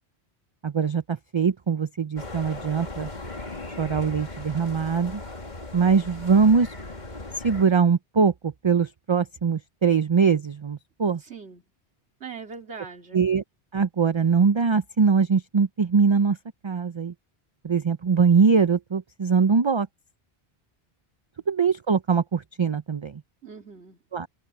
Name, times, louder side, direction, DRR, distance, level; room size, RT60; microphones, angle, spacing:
voice 1, 0.6-3.1 3.8-5.2 5.7-6.7 7.4-11.2 13.1-13.4 13.7-16.4 16.6-17.1 17.6-19.9 21.5-23.2 24.1-24.3, right 5 dB, 35° right, 0.5 m, -22 dB
sound 1, 2.2-7.6, left 2 dB, 45° left, 2.3 m, -38 dB
voice 2, 11.2-11.6 12.2-13.2 23.4-24.0, right 5 dB, 85° right, 2.7 m, -41 dB
omnidirectional pair, 1.1 m